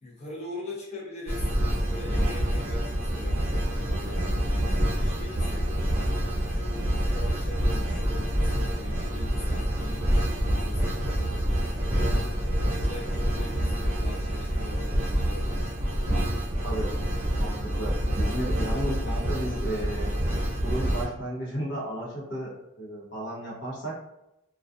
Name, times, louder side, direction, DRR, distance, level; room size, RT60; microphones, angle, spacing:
voice 1, 0.0-1.4 1.8-4.5 4.9-5.9 6.5-10.3 10.6-11.3 11.8-15.5, left 2 dB, 30° left, -5 dB, 0.7 m, -42 dB
sound 1, 1.3-21.0, equal, 40° right, 0.8 m, -27 dB
voice 2, 17.4-20.1 20.6-23.9, right 1 dB, 60° left, -4 dB, 0.9 m, -33 dB
2.3 x 2.3 x 2.5 m, 0.84 s
head